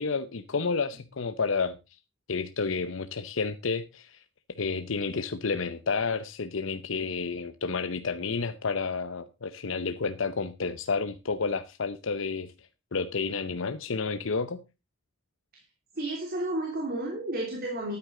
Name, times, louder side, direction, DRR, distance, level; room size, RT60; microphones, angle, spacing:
voice 1, 0.0-1.8 2.3-4.2 4.6-12.5 12.9-14.6, left 4 dB, 65° left, 0.7 m, -30 dB
voice 2, 15.9-18.0, right 1 dB, 45° right, 3.1 m, -32 dB
13.0 x 9.7 x 3.8 m
head